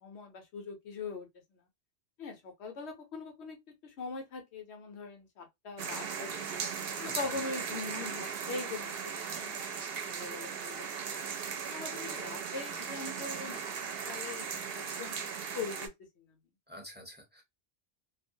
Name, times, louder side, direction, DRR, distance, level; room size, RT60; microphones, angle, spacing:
voice 1, 0.0-1.3 2.2-3.6 3.8-6.6 7.0-10.9 11.7-13.6 14.1-15.2 15.5-15.9 16.2-16.3, left 4 dB, 85° left, 1.0 m, -42 dB
sound 1, 5.8-15.9, right 6 dB, 65° right, 0.7 m, -38 dB
voice 2, 7.0-7.3 16.7-17.4, equal, 10° right, 0.7 m, -46 dB
2.5 x 2.0 x 2.6 m
omnidirectional pair, 1.1 m